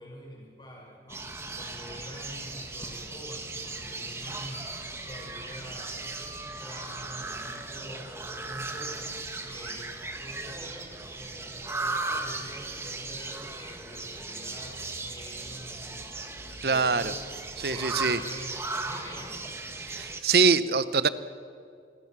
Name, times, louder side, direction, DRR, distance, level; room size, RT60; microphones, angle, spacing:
voice 1, 0.0-17.1 17.6-19.5, equal, 25° left, -1 dB, 6.5 m, -46 dB
sound 1, 1.1-20.2, right 3 dB, 15° right, 1.5 m, -37 dB
voice 2, 16.6-17.0 17.6-18.2 19.8-21.1, right 4 dB, 65° right, 14 dB, 0.9 m, -24 dB
28.5 x 21.5 x 6.2 m, 2.3 s
head